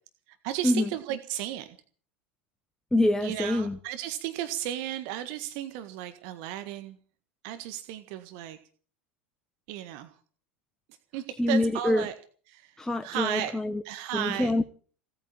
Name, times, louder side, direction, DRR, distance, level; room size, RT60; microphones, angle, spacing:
voice 1, 0.4-1.8 3.2-7.0 7.4-8.6 9.7-10.1 11.1-12.1 12.5-12.7 13.0-13.5 13.8-14.5, right 12 dB, 55° right, 1.7 m, -34 dB
voice 2, 2.9-3.8 11.4-12.1 12.8-13.8 14.1-14.6, left 1 dB, 5° left, 1.0 m, -25 dB
17.5 x 8.9 x 8.6 m
figure-of-eight pair, 80°, 6 cm